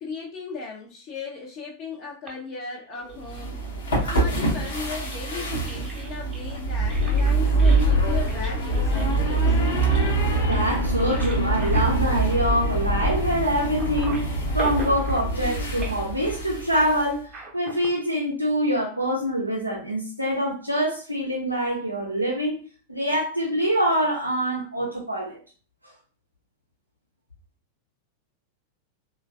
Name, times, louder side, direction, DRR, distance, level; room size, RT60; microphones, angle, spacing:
voice 1, 0.0-3.6 4.0-9.6, left 4 dB, 40° left, -3 dB, 0.5 m, -36 dB
sound 1, 2.3-3.5 4.1-13.5 13.8-15.6 15.8-16.2 17.3-17.9, right 4 dB, 25° right, 0.6 m, -41 dB
sound 2, 3.2-17.1, right 1 dB, 60° left, 0.8 m, -24 dB
voice 2, 10.5-22.6 22.9-25.4, equal, 85° right, -3 dB, 0.4 m, -25 dB
3.1 x 2.1 x 2.3 m, 0.38 s
figure-of-eight pair, 90°, 0 cm